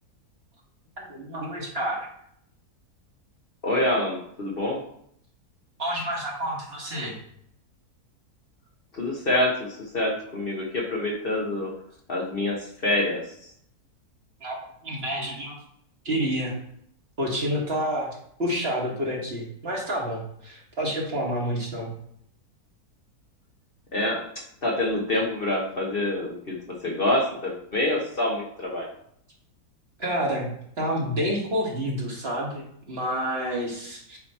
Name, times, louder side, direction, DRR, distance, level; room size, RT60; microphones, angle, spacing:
voice 1, 1.0-2.1 5.8-7.2 14.4-14.6 14.8-15.6 16.1-16.5 17.2-21.9 30.0-34.2, equal, 40° right, -3 dB, 1.7 m, -29 dB
voice 2, 3.6-4.8 8.9-11.7 12.1-13.2 23.9-28.9, left 1 dB, 40° left, -2 dB, 1.2 m, -26 dB
8.8 x 3.1 x 4.2 m, 0.69 s
omnidirectional pair, 1.6 m